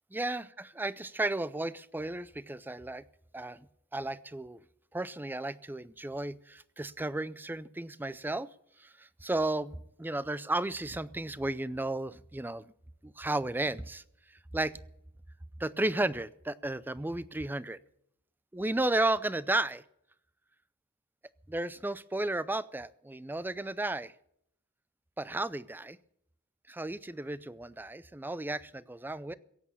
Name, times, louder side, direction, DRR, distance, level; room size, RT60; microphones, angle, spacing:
voice 1, 0.1-3.0 3.3-3.7 3.9-4.6 4.9-8.5 8.8-12.6 13.0-14.0 14.5-14.8 15.6-17.8 18.5-19.8 21.5-24.1 25.2-26.0 26.7-29.3, right 2 dB, 10° right, 18 dB, 0.4 m, -33 dB
17.0 x 8.5 x 7.1 m, 0.73 s
head